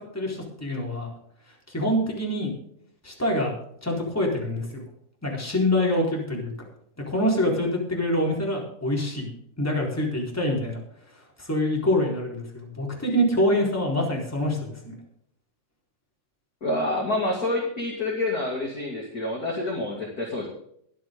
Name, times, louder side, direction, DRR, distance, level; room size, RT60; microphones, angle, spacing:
voice 1, 0.1-1.1 1.7-2.5 3.0-3.5 3.8-4.8 5.2-6.5 7.1-9.3 9.6-10.8 11.4-14.6 14.8-14.9, left 1 dB, 5° left, -1 dB, 3.6 m, -25 dB
voice 2, 16.6-20.5, left 2 dB, 30° left, -1 dB, 2.5 m, -27 dB
22.0 x 7.7 x 3.7 m, 0.71 s
omnidirectional pair, 3.6 m